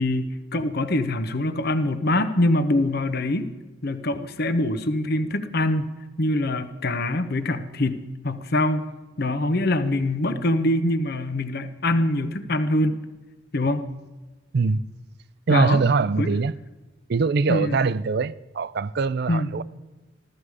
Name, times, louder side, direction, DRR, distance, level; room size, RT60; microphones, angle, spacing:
voice 1, 0.0-3.5 3.8-5.9 6.2-8.9 9.2-13.0 13.5-13.8 15.5-15.8 16.2-16.3 17.5-17.8 19.3-19.6, left 1 dB, 55° left, 1.0 m, -24 dB
voice 2, 15.5-16.5 17.1-19.6, right 4 dB, 60° right, 0.5 m, -22 dB
15.5 x 13.5 x 4.8 m
head